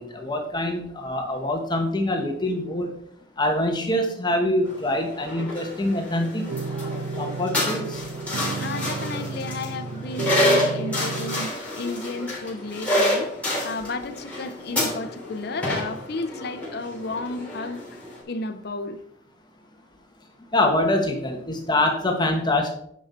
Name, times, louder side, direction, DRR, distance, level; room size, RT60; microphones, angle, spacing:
voice 1, 0.0-2.9 3.4-6.5 7.2-8.0 20.5-22.8, left 1 dB, 25° left, 1.2 m, -24 dB
sound 1, 4.6-18.2, left 1 dB, 10° left, 3.6 m, -28 dB
sound 2, 6.5-11.5, right 4 dB, 85° right, 0.3 m, -32 dB
voice 2, 8.6-13.3 13.6-18.0 18.3-19.0, left 3 dB, 60° left, 0.7 m, -33 dB
9.9 x 5.4 x 4.4 m
head